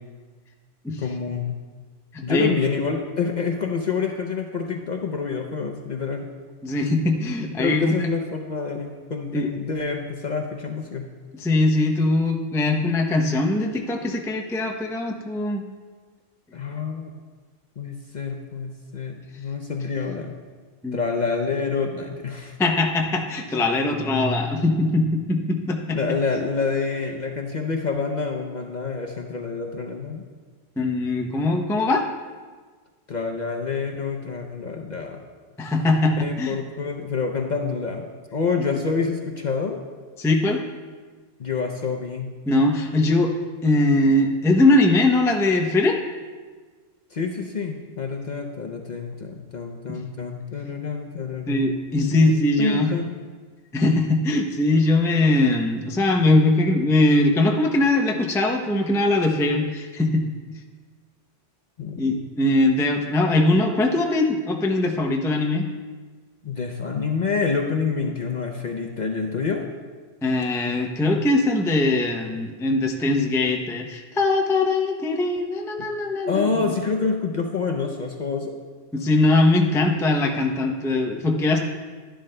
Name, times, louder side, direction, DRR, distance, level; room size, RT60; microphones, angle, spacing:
voice 1, 1.0-1.6 2.2-6.3 7.6-11.1 16.5-17.1 17.8-20.3 20.9-22.6 25.9-30.3 33.1-35.2 36.2-39.8 41.4-42.3 47.1-53.0 61.8-62.2 66.4-69.7 75.8-75.9 76.3-78.6, left 5 dB, 50° left, 2 dB, 0.6 m, -27 dB
voice 2, 2.1-2.5 6.6-7.9 9.3-9.5 11.3-15.6 20.8-21.0 22.6-26.0 30.8-32.0 35.6-36.6 40.2-40.6 42.5-43.3 43.6-46.0 51.5-52.9 53.7-60.6 62.0-65.7 70.2-76.5 78.9-81.6, left 2 dB, 5° left, 2 dB, 0.4 m, -21 dB
11.5 x 11.5 x 2.2 m, 1.5 s
omnidirectional pair, 1.2 m